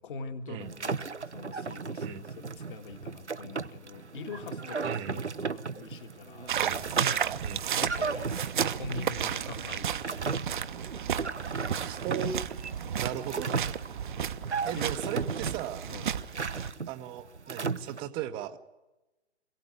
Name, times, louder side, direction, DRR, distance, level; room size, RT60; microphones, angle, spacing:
voice 1, 0.0-6.5 7.8-10.4 14.8-14.9 15.9-16.1, left 4 dB, 50° left, 7 dB, 1.8 m, -44 dB
sound 1, 0.6-18.0, right 5 dB, 85° right, 0.8 m, -35 dB
voice 2, 4.8-5.2 6.6-6.9 7.4-7.7 11.9-12.6 13.0-13.7 14.6-15.9 16.9-18.6, right 10 dB, 15° right, 11 dB, 0.8 m, -37 dB
sound 2, 6.5-16.7, right 8 dB, 45° right, 0.9 m, -33 dB
22.5 x 17.0 x 9.4 m, 1.0 s
figure-of-eight pair, 125°, 34 cm